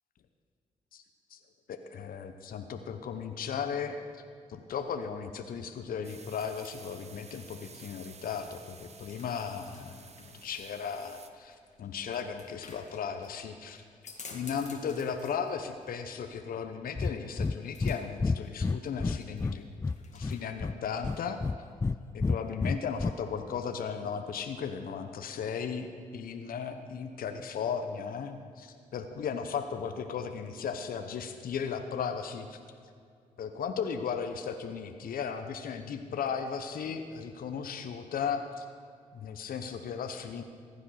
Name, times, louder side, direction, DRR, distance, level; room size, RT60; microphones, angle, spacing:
voice 1, 1.7-4.0 4.5-10.0 10.4-13.8 14.3-19.7 20.1-21.4 22.1-25.9 26.1-32.6 33.4-38.6 39.1-40.4, left 6 dB, 60° left, 7 dB, 0.9 m, -36 dB
sound 1, 6.0-11.3, right 5 dB, 40° right, 1.0 m, -52 dB
sound 2, 9.1-21.4, left 4 dB, 45° left, 1.9 m, -54 dB
Breathing, 17.0-17.1 17.4-17.6 17.8-18.0 18.2-19.6 19.8-20.7 21.0-22.0 22.2-23.1, left 4 dB, 15° left, 0.3 m, -29 dB
15.5 x 9.9 x 4.9 m, 2.3 s
hypercardioid pair, 45°, 17 cm